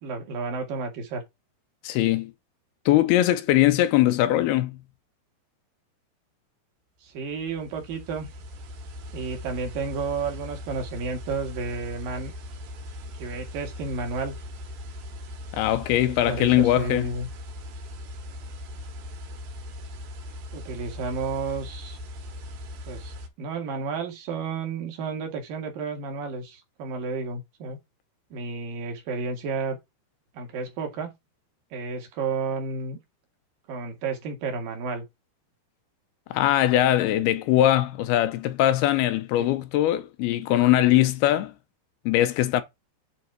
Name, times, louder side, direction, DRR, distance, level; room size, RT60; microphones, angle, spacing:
voice 1, 0.0-1.2 7.0-8.3 9.1-12.3 13.2-14.4 15.9-17.3 20.5-22.0 22.9-27.8 28.3-29.8 30.3-31.1 31.7-33.0 33.7-35.0 39.4-39.5, right 4 dB, 60° right, 3.3 m, -32 dB
voice 2, 1.8-2.3 2.9-4.8 15.5-17.1 36.3-41.5 42.1-42.6, left 13 dB, 85° left, 2.6 m, -21 dB
sound 1, 7.2-23.3, left 1 dB, 90° right, 3.8 m, -39 dB
9.4 x 4.1 x 4.6 m
omnidirectional pair, 4.7 m